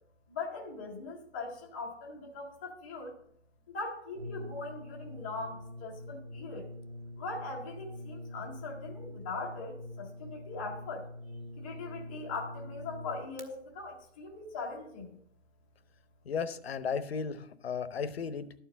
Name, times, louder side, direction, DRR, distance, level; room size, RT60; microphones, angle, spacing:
voice 1, 0.3-3.1 3.7-6.7 7.2-11.0 11.6-15.1, left 3 dB, 10° left, -5 dB, 0.6 m, -40 dB
Brass instrument, 4.1-13.5, left 1 dB, 70° right, 1.8 m, -45 dB
voice 2, 16.2-18.5, left 6 dB, 55° left, 13 dB, 0.8 m, -35 dB
12.5 x 4.6 x 7.0 m, 0.68 s
hypercardioid pair, 170°, 36 cm